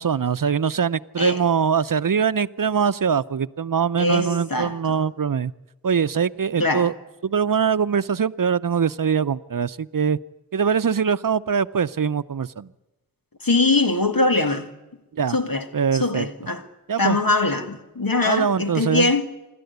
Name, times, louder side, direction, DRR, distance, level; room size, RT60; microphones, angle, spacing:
voice 1, 0.0-5.5 5.8-6.9 7.2-10.2 10.5-12.7 15.1-15.4 15.7-16.3 16.9-17.2 18.2-19.1, right 7 dB, 70° right, 0.6 m, -22 dB
voice 2, 4.0-5.0 6.6-6.9 13.4-14.7 15.3-15.7 15.9-16.6 17.0-19.3, left 2 dB, 80° left, 1.8 m, -22 dB
26.5 x 12.5 x 8.0 m
wide cardioid pair, 45°, 34 cm